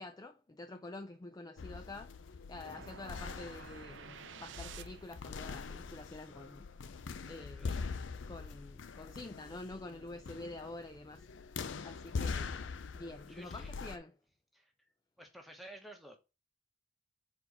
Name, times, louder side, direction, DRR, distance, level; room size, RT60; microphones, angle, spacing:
voice 1, 0.0-6.7 7.3-7.8 8.3-11.3 11.8-14.1, left 2 dB, 20° left, 0.4 m, -48 dB
sound 1, 1.6-14.0, left 5 dB, 85° left, 0.5 m, -43 dB
sound 2, 2.6-5.3, right 7 dB, 80° right, 0.5 m, -51 dB
voice 2, 7.4-7.9 13.3-13.7 14.5-14.7 15.2-16.2, right 1 dB, ahead, 1.3 m, -53 dB
4.5 x 4.2 x 5.5 m
head